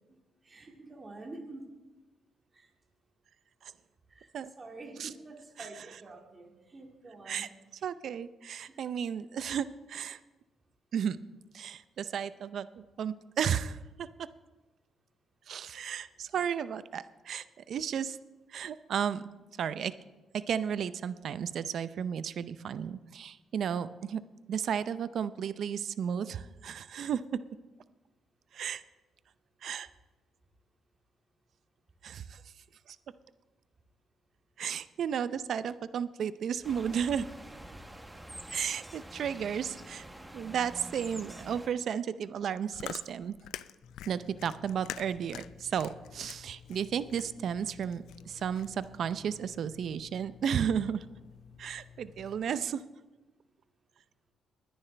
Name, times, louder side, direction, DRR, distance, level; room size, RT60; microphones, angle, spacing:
voice 1, 0.4-1.6 2.5-2.7 4.1-4.3 4.6-7.5 8.7-8.8, right 2 dB, 30° right, 0 dB, 2.2 m, -47 dB
voice 2, 7.8-10.2 10.9-11.2 11.5-14.1 15.5-18.2 18.5-19.2 19.6-19.9 20.5-24.2 24.5-27.2 28.5-28.8 29.6-29.9 32.0-32.4 34.6-37.3 38.5-40.0 40.3-43.3 44.1-51.0 51.6-52.8, right 8 dB, 65° right, 14 dB, 0.6 m, -33 dB
sound 1, 36.6-41.7, right 1 dB, 10° right, 1.1 m, -46 dB
Chewing mastication, 42.4-48.9, left 12 dB, 85° left, 0.3 m, -46 dB
sound 2, 43.8-52.4, left 7 dB, 60° left, 2.0 m, -54 dB
20.5 x 9.8 x 3.4 m, 1.1 s
cardioid pair, 90°, 0 cm